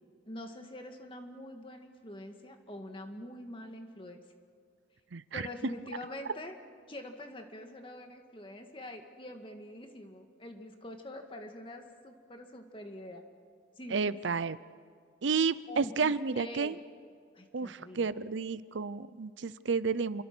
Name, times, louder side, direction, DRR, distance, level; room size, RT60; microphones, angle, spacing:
voice 1, 0.3-4.2 5.3-6.6 6.9-13.2 13.8-14.4 15.7-16.8 17.3-18.1, left 1 dB, 30° left, 4 dB, 1.9 m, -45 dB
voice 2, 5.1-5.4 13.9-14.6 15.2-16.7 17.5-20.2, right 5 dB, 85° right, 16 dB, 0.6 m, -31 dB
28.5 x 23.0 x 6.2 m, 2.1 s
head